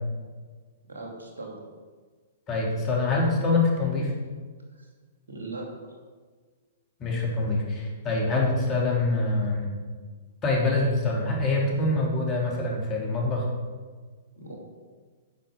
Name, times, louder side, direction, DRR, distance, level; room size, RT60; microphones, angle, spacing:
voice 1, 0.9-1.6 4.7-4.9 5.3-6.0 14.4-14.6, right 2 dB, 85° right, 0 dB, 2.8 m, -39 dB
voice 2, 2.5-4.1 7.0-9.7 10.4-13.5, left 2 dB, 30° left, -2 dB, 3.2 m, -25 dB
9.7 x 5.9 x 7.6 m, 1.5 s
hypercardioid pair, 115°, 0 cm